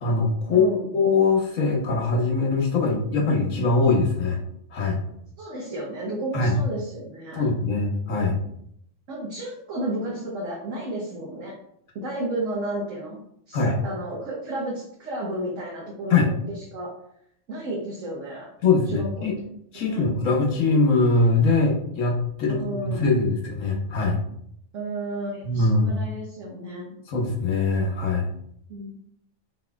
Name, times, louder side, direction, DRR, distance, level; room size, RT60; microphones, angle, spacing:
voice 1, 0.0-0.7 0.9-4.4 4.7-5.0 6.3-6.5 7.3-8.4 13.5-13.7 16.1-16.3 18.6-19.4 19.7-24.2 25.4-26.0 27.1-28.3, left 3 dB, 80° left, 0 dB, 1.3 m, -22 dB
voice 2, 0.5-0.9 5.4-7.5 8.1-8.2 9.1-11.5 11.9-13.2 13.5-16.9 17.5-18.5 18.9-19.3 19.8-20.0 22.5-23.1 24.7-27.0 28.7-28.9, right 1 dB, 80° right, -4 dB, 1.3 m, -32 dB
4.3 x 4.2 x 2.3 m, 0.72 s
omnidirectional pair, 1.3 m